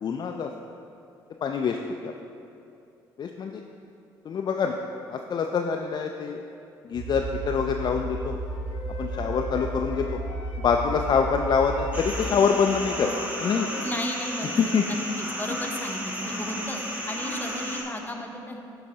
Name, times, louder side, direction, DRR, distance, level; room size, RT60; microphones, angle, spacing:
voice 1, 0.0-0.5 1.4-1.8 2.0-2.1 3.2-3.6 4.2-4.8 5.1-6.4 6.8-8.4 9.0-10.2 10.6-13.7 14.6-14.9, left 6 dB, 40° left, 3 dB, 0.3 m, -25 dB
sound 1, 6.9-12.2, right 2 dB, 75° right, 1.4 m, -33 dB
Wind instrument woodwind instrument, 8.4-11.2 11.6-14.7, left 2 dB, 75° left, 0.7 m, -44 dB
sound 2, 11.9-17.8, equal, 15° right, 1.0 m, -33 dB
voice 2, 13.8-14.6 14.9-18.6, left 1 dB, 15° left, 2 dB, 0.8 m, -34 dB
11.0 x 3.8 x 2.8 m, 2.6 s
hypercardioid pair, 55°, 11 cm